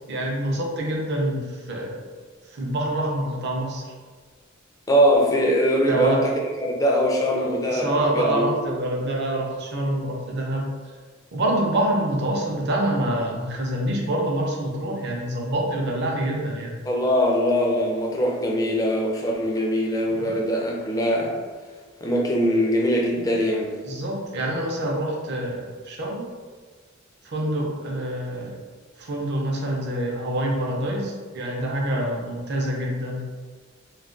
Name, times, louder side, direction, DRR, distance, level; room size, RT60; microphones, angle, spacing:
voice 1, 0.1-2.0 2.5-3.8 5.9-6.2 7.4-10.7 11.3-16.8 20.1-20.3 23.8-26.3 27.2-28.6 29.0-33.2, right 1 dB, 55° right, -2 dB, 0.6 m, -26 dB
voice 2, 4.9-6.3 6.7-8.5 16.9-21.4 22.0-23.8, equal, 15° left, -1 dB, 0.4 m, -22 dB
2.3 x 2.2 x 3.7 m, 1.5 s
head